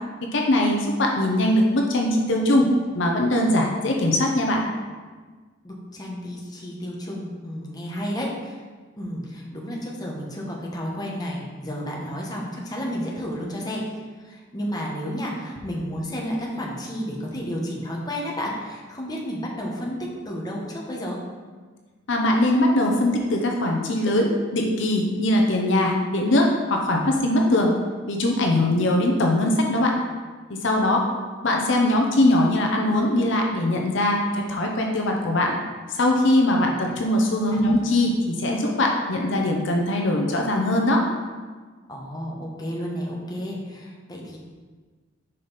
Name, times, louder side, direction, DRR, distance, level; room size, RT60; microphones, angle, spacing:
voice 1, 0.3-2.7 2.9-4.7 22.1-27.7 28.1-30.0 30.5-31.0 31.4-35.5 35.9-41.0, left 1 dB, 70° left, 1 dB, 0.7 m, -21 dB
voice 2, 5.6-8.6 8.9-13.8 14.2-20.0 20.2-21.2 36.6-36.7 37.5-37.7 41.9-44.4, equal, 20° left, -3 dB, 1.0 m, -31 dB
5.5 x 5.0 x 4.1 m, 1.4 s
head